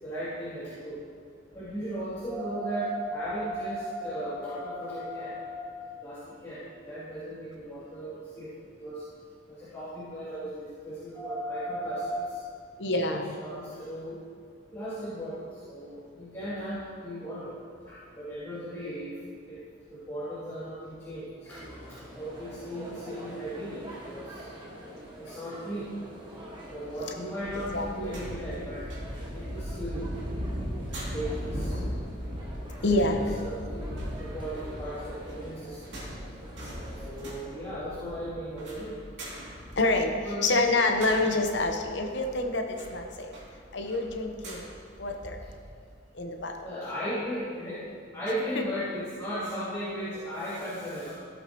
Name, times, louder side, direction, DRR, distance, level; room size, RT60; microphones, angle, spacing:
voice 1, 0.0-1.0 1.5-9.1 9.5-12.6 13.1-14.2 14.7-17.6 17.9-19.2 19.4-19.6 19.9-24.5 25.2-25.9 26.7-30.1 31.1-31.8 32.8-36.1 36.9-39.0 40.2-40.4 46.6-51.1, equal, 15° left, -13 dB, 2.7 m, -36 dB
voice 2, 12.8-13.4 27.7-28.2 32.8-33.2 39.8-40.1 40.4-43.3 43.7-44.7 45.0-45.4 46.1-46.5 48.6-48.7, left 2 dB, 65° left, 3 dB, 1.0 m, -27 dB
sound 1, 21.5-37.3, equal, 25° right, 1.6 m, -45 dB
sound 2, 27.4-45.8 46.2-46.3, equal, 70° right, 2.6 m, -39 dB
15.5 x 7.9 x 3.0 m, 2.3 s
head